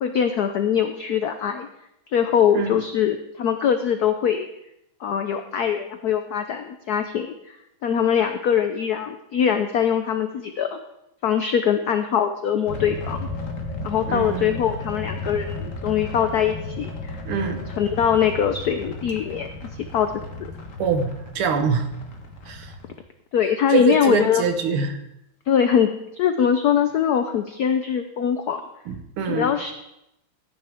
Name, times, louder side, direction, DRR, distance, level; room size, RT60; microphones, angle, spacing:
voice 1, 0.0-1.7 2.1-4.5 5.0-7.6 7.8-10.8 11.2-13.3 13.8-17.2 17.8-20.1 23.3-24.4 25.5-28.6 29.2-29.7, left 8 dB, 70° left, 7 dB, 0.9 m, -22 dB
sound 1, 12.7-22.9, left 2 dB, 40° left, 1.5 m, -34 dB
voice 2, 14.1-14.6 17.3-17.7 20.8-21.9 22.5-22.7 23.7-25.0 28.9-29.5, right 5 dB, 80° right, 7 dB, 2.0 m, -24 dB
14.5 x 9.0 x 3.5 m, 0.84 s
omnidirectional pair, 2.3 m